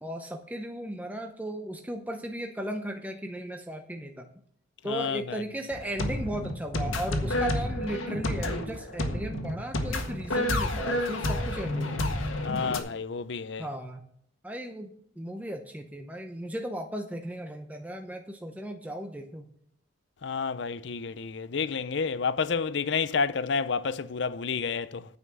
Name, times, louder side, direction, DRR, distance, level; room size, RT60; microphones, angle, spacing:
voice 1, 0.0-4.3 4.8-12.0 13.6-14.1 14.4-19.5, right 1 dB, 5° right, 0.7 m, -36 dB
voice 2, 4.9-5.4 12.4-13.6 20.2-25.0, left 5 dB, 60° left, 0.5 m, -30 dB
sound 1, 5.7-12.8, left 1 dB, 80° left, 1.7 m, -30 dB
9.6 x 5.7 x 7.5 m
head